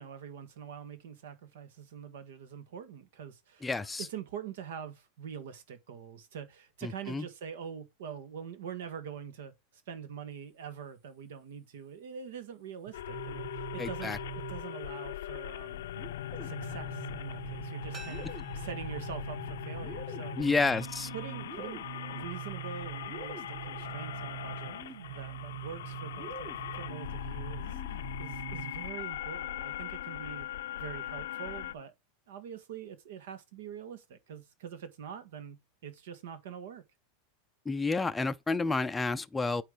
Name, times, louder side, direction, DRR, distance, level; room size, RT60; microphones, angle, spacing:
voice 1, 0.0-3.7 4.0-9.5 9.9-15.8 16.4-18.3 18.5-20.4 21.1-21.8 22.1-24.8 25.1-27.8 28.2-30.5 30.8-31.9 32.3-36.8, right 8 dB, 80° right, 1.7 m, -44 dB
voice 2, 3.6-4.1 6.8-7.3 13.8-14.2 20.4-21.1 37.7-39.6, left 3 dB, 10° left, 0.4 m, -30 dB
sound 1, 12.9-31.7, left 13 dB, 85° left, 0.6 m, -40 dB
sound 2, 12.9-15.0 16.0-28.9, right 13 dB, 45° right, 2.0 m, -44 dB
sound 3, 17.9-20.7 21.0-21.1, right 4 dB, 25° right, 2.2 m, -54 dB
9.0 x 3.1 x 5.1 m
supercardioid pair, 145°, 0 cm